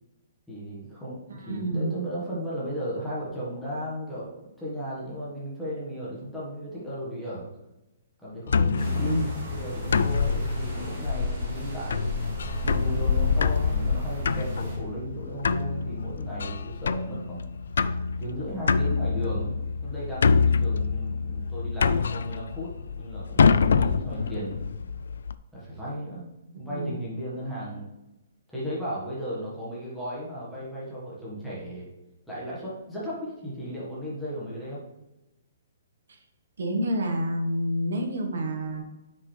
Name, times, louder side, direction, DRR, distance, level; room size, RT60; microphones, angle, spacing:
voice 1, 0.5-7.5 8.2-12.2 12.6-17.5 18.2-19.5 19.8-22.7 23.0-24.7 25.5-27.9 28.5-31.9 32.3-34.8, equal, ahead, -9 dB, 1.5 m, -35 dB
voice 2, 1.5-2.0 8.7-9.3 26.5-26.9 36.6-38.8, equal, 65° right, 3 dB, 1.4 m, -29 dB
sound 1, 8.5-25.3, left 5 dB, 75° left, 0.4 m, -26 dB
sound 2, 8.8-14.8, right 2 dB, 20° right, 2.3 m, -38 dB
9.4 x 5.3 x 3.3 m, 0.98 s
hypercardioid pair, 180°, 0 cm